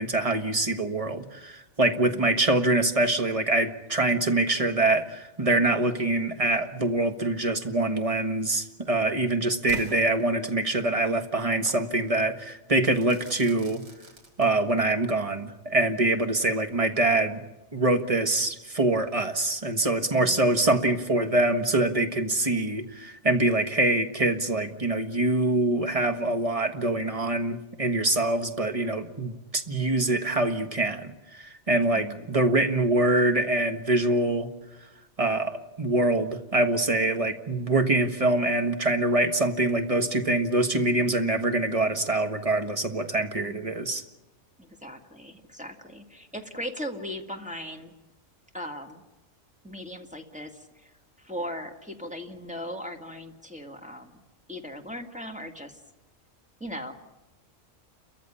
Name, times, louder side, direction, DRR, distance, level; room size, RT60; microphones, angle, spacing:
voice 1, 0.0-13.8 14.4-17.4 17.7-31.1 31.4-34.5 35.2-44.0, right 2 dB, 25° right, 7 dB, 1.6 m, -24 dB
Crackle / Fireworks, 9.7-10.8 11.7-11.9 12.9-14.9, right 1 dB, 80° right, 3.7 m, -45 dB
voice 2, 20.1-20.6 31.9-32.3 43.4-43.7 44.6-47.9 48.5-49.0 49.6-50.9 51.2-54.2 54.5-55.8 56.6-56.9, equal, 5° right, 2 dB, 2.1 m, -38 dB
30.0 x 14.5 x 9.9 m, 1.0 s
omnidirectional pair, 1.4 m